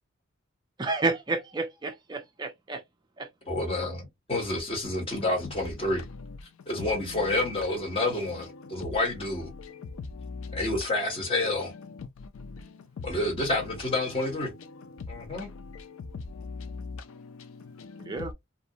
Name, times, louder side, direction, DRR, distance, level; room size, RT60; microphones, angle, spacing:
voice 1, 0.8-2.8 3.2-3.3 18.0-18.3, right 3 dB, 20° right, 0.3 m, -30 dB
voice 2, 3.5-6.0 6.7-9.5 10.5-11.7 13.0-14.5 15.1-15.5, left 2 dB, 25° left, 1.1 m, -29 dB
voice 3, 5.1-5.5 6.2-6.4 6.8-8.1 8.4-8.9 9.3-13.8 14.4-18.3, left 4 dB, 75° left, 0.4 m, -42 dB
2.6 x 2.1 x 2.7 m
head